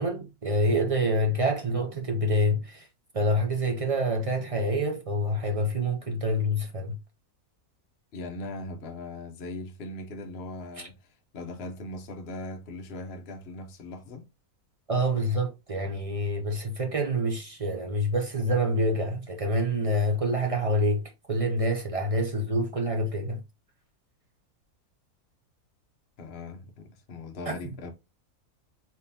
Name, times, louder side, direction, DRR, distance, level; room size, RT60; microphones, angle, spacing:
voice 1, 0.0-2.9 3.1-7.0 14.9-23.4 27.5-27.6, equal, 45° right, 0.4 m, -27 dB
voice 2, 8.1-14.3 26.2-27.9, left 2 dB, 50° left, 0.9 m, -39 dB
4.2 x 3.7 x 2.6 m
omnidirectional pair, 1.6 m